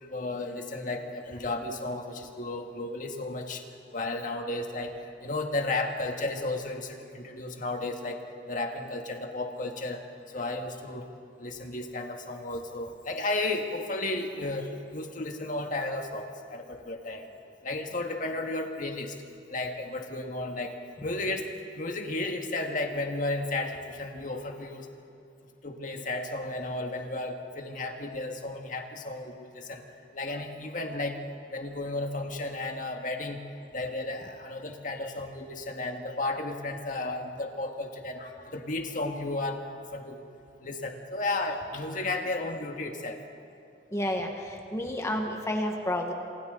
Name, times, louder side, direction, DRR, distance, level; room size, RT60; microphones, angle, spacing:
voice 1, 0.0-3.6 3.9-4.9 5.2-10.0 10.3-11.0 11.4-17.3 17.6-19.1 19.5-20.7 21.0-21.5 21.8-24.9 25.6-29.8 30.1-31.2 31.5-33.4 33.7-39.7 39.9-40.2 40.6-43.2, left 2 dB, 50° left, 3 dB, 1.9 m, -33 dB
voice 2, 43.9-46.1, left 1 dB, 15° left, 2 dB, 1.6 m, -30 dB
27.5 x 26.5 x 4.0 m, 2.5 s
head